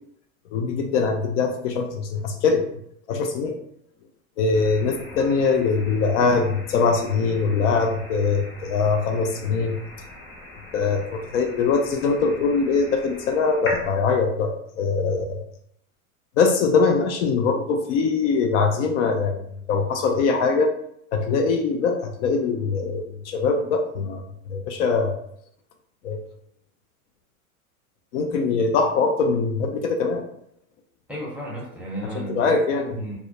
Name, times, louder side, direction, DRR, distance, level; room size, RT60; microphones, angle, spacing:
voice 1, 0.5-2.6 3.1-3.6 4.4-9.8 10.7-15.4 16.4-20.7 21.1-24.2 24.5-25.2 26.0-26.2 28.1-30.2 32.1-32.9, left 4 dB, 55° left, 4 dB, 0.5 m, -22 dB
sound 1, 4.5-13.9, left 1 dB, 30° left, 0.8 m, -40 dB
voice 2, 31.1-33.2, right 1 dB, 5° right, -5 dB, 0.6 m, -33 dB
2.3 x 2.0 x 2.7 m, 0.69 s
hypercardioid pair, 100°, 43 cm